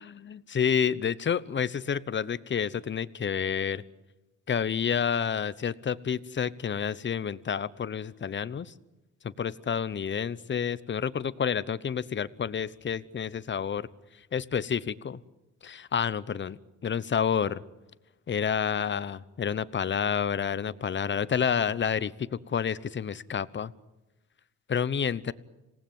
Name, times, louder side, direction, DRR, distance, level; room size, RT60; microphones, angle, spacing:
voice 1, 0.2-3.8 4.5-8.7 9.2-13.9 14.3-15.2 15.6-17.6 18.3-22.1 22.5-23.7 24.7-25.3, left 7 dB, 40° left, 17 dB, 1.0 m, -29 dB
26.5 x 18.5 x 9.3 m, 1.0 s
cardioid pair, 90°, 30 cm